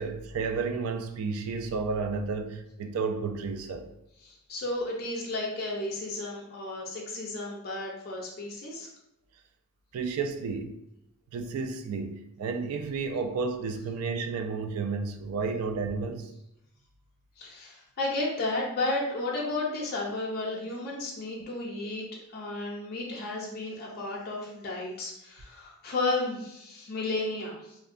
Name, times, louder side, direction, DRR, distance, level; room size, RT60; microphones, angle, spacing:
voice 1, 0.0-3.9 9.9-10.8 11.3-16.3, right 4 dB, 80° right, 7 dB, 0.3 m, -32 dB
voice 2, 4.2-8.9 17.4-22.0 22.3-27.8, left 2 dB, 45° left, -3 dB, 0.4 m, -33 dB
2.5 x 2.1 x 2.4 m, 0.83 s
head